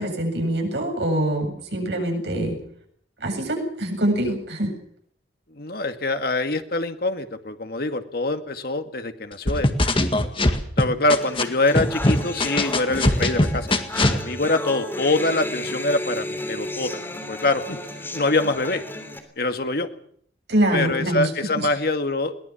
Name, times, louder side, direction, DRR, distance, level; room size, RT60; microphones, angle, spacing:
voice 1, 0.0-2.5 3.2-4.7 20.5-21.3 21.6-21.7, right 1 dB, 70° right, 3 dB, 7.7 m, -24 dB
voice 2, 5.5-9.7 10.8-13.7 14.1-17.0 17.3-18.8 19.4-19.9 20.7-22.3, left 2 dB, 60° left, 7 dB, 2.2 m, -24 dB
sound 1, 9.5-11.4 11.7-14.2, left 1 dB, 30° left, 1.9 m, -20 dB
sound 2, 11.2-19.2, left 1 dB, 15° left, 3.3 m, -33 dB
22.0 x 18.5 x 7.2 m, 0.63 s
head